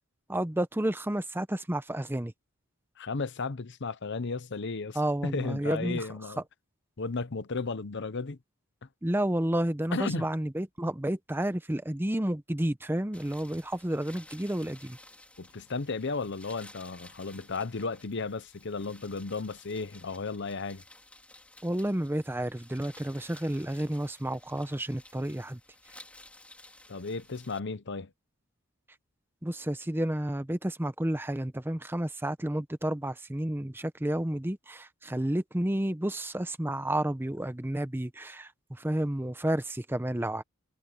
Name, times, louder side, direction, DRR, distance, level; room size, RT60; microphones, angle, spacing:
voice 1, 0.3-2.3 4.9-6.1 9.0-15.0 21.6-25.6 29.4-40.4, right 1 dB, 10° right, 0.7 m, -31 dB
voice 2, 3.0-6.4 7.0-8.4 9.9-10.3 15.4-20.8 26.9-28.1, left 4 dB, 55° left, 0.8 m, -34 dB
sound 1, 13.1-27.6, left 1 dB, 5° left, 3.4 m, -54 dB
head